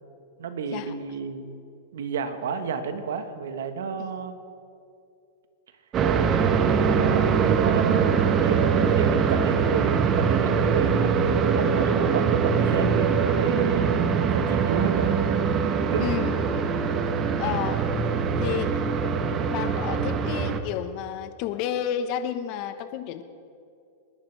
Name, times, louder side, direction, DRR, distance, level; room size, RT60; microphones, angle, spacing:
voice 1, 0.4-1.6 1.9-4.4 6.8-15.1 15.9-16.2, right 6 dB, 80° right, 8 dB, 1.5 m, -31 dB
sound 1, 5.9-20.6, right 6 dB, 30° right, 1.2 m, -23 dB
voice 2, 16.0-16.5 17.4-17.8 18.4-18.7 19.5-23.2, left 10 dB, 50° left, 9 dB, 1.2 m, -31 dB
29.0 x 11.0 x 3.5 m, 2.4 s
hypercardioid pair, 125°, 0 cm